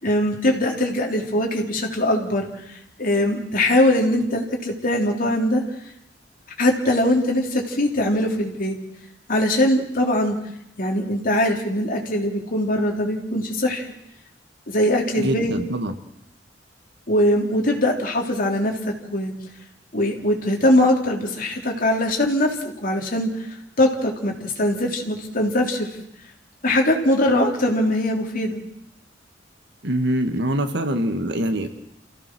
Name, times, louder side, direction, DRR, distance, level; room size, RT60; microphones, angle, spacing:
voice 1, 0.0-5.6 6.6-8.8 9.3-10.4 10.8-13.9 14.7-15.5 17.1-19.3 19.9-22.5 22.8-23.5 23.8-25.9 26.6-28.6, left 1 dB, 50° left, 1 dB, 3.5 m, -21 dB
voice 2, 15.2-15.9 29.8-31.7, right 1 dB, 65° right, 7 dB, 1.9 m, -24 dB
28.0 x 16.0 x 6.2 m, 0.78 s
head